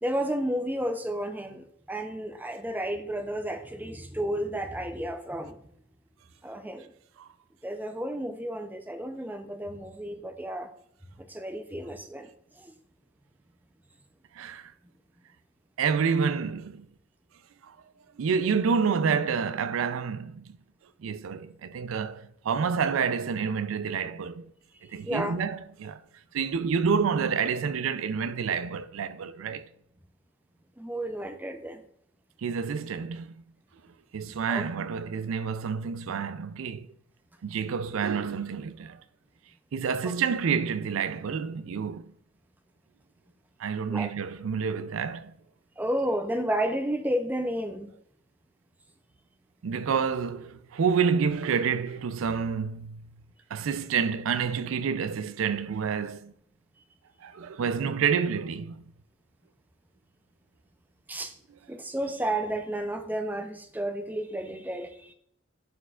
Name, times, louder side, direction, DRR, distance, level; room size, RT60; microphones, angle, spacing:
voice 1, 0.0-5.6 6.4-6.9 7.6-10.7 11.2-12.3 12.6-12.7 25.0-25.4 30.8-31.8 34.5-34.6 40.0-40.1 43.9-44.1 45.8-47.9 61.1-61.3 61.7-65.1, right 1 dB, 10° right, 0.5 m, -32 dB
voice 2, 14.4-14.7 15.8-16.9 17.7-17.8 18.2-20.6 21.0-24.5 24.9-26.0 26.3-29.7 32.4-33.4 34.1-36.9 37.4-39.0 39.7-42.0 43.6-45.3 49.6-53.1 53.5-56.3 57.2-58.8, right 6 dB, 85° right, 0.4 m, -28 dB
11.0 x 4.5 x 2.4 m
head